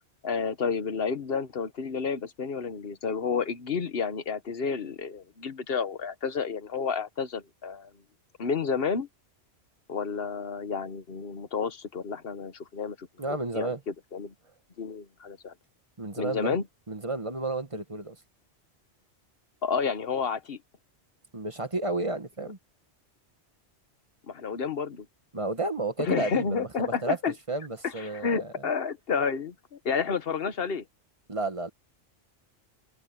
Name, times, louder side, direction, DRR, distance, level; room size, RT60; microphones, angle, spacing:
voice 1, 0.2-7.9 8.4-9.1 9.9-14.3 14.8-15.5 16.2-16.6 19.6-20.6 24.3-25.1 26.0-27.3 27.8-30.8, left 5 dB, 55° left, 1.4 m, -30 dB
voice 2, 13.2-13.8 16.0-16.6 16.9-18.2 21.3-22.6 25.3-27.2 27.5-28.6 31.3-31.7, right 2 dB, 30° right, 1.5 m, -32 dB
omnidirectional pair, 1.2 m